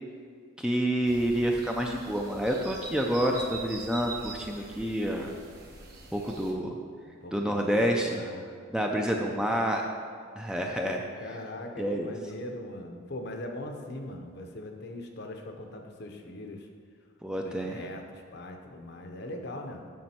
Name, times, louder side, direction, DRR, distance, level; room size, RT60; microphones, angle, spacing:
voice 1, 0.6-5.3 6.1-6.7 7.3-8.2 8.7-9.8 10.4-11.0 11.8-12.1 17.2-17.8, equal, 5° right, 1 dB, 0.4 m, -28 dB
sound 1, 1.0-6.5, right 3 dB, 45° right, 1.1 m, -44 dB
voice 2, 7.1-8.4 8.9-9.4 11.2-16.7 17.4-19.9, left 1 dB, 50° left, 4 dB, 0.7 m, -41 dB
7.5 x 6.1 x 4.3 m, 2.1 s
head